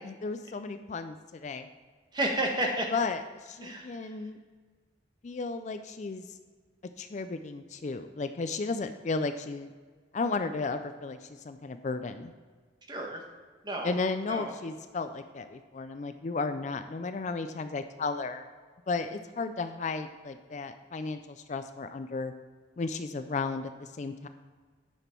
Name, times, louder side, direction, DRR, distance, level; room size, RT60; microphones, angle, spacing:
voice 1, 0.0-1.7 2.9-4.4 5.2-6.4 7.0-9.7 10.1-12.3 13.8-18.5 18.9-22.3 22.8-24.3, left 3 dB, 40° left, 9 dB, 0.4 m, -34 dB
voice 2, 2.1-2.9 3.6-4.1 12.9-13.2 13.6-13.9 14.3-14.5, right 1 dB, 25° right, 1 dB, 1.3 m, -31 dB
9.9 x 6.1 x 4.4 m, 1.5 s
head